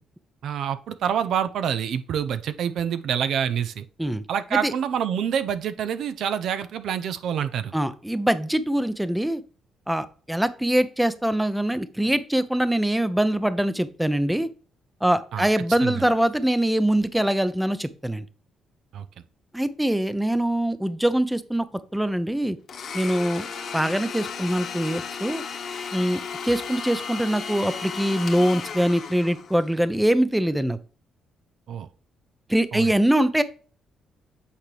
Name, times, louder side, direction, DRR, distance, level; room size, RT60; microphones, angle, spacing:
voice 1, 0.4-3.9 4.3-7.7 15.3-15.5 15.8-16.1 18.9-19.0 31.7-31.9 32.7-32.9, right 8 dB, 70° right, 11 dB, 0.5 m, -27 dB
voice 2, 7.7-9.4 9.9-14.5 15.0-18.2 19.5-21.7 21.9-22.6 22.9-23.5 23.7-25.4 25.9-30.8 32.5-33.4, right 1 dB, 5° right, 13 dB, 0.6 m, -23 dB
Domestic sounds home sounds, 22.7-29.7, left 6 dB, 60° left, 1.3 m, -34 dB
8.3 x 4.4 x 3.3 m, 0.39 s
cardioid pair, 90°, 0 cm